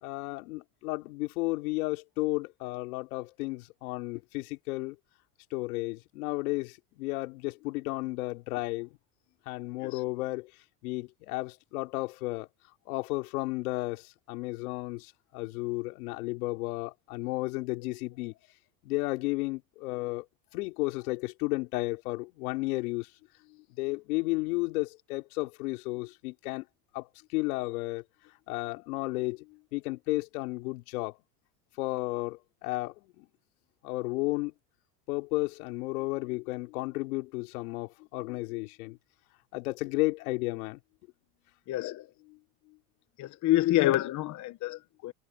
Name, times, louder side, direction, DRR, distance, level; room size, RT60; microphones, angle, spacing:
voice 1, 0.0-5.0 5.5-8.9 9.5-10.5 10.8-12.5 12.9-18.3 18.8-20.3 20.5-23.1 23.8-26.7 26.9-28.0 28.5-31.2 31.8-33.3 33.8-34.5 35.1-39.0 39.5-40.8 42.3-42.4, left 23 dB, 75° left, 3.5 m, -33 dB
voice 2, 41.7-42.0 43.2-45.1, left 15 dB, 40° left, 1.0 m, -27 dB
supercardioid pair, 115°, 44 cm